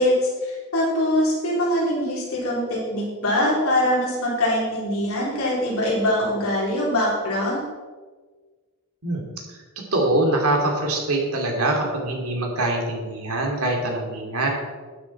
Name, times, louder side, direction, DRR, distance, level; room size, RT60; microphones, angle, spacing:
voice 1, 0.0-7.6, left 1 dB, 70° left, -5 dB, 3.7 m, -23 dB
voice 2, 9.9-14.5, right 2 dB, 75° right, 1 dB, 2.8 m, -23 dB
12.0 x 9.6 x 4.4 m, 1.4 s
head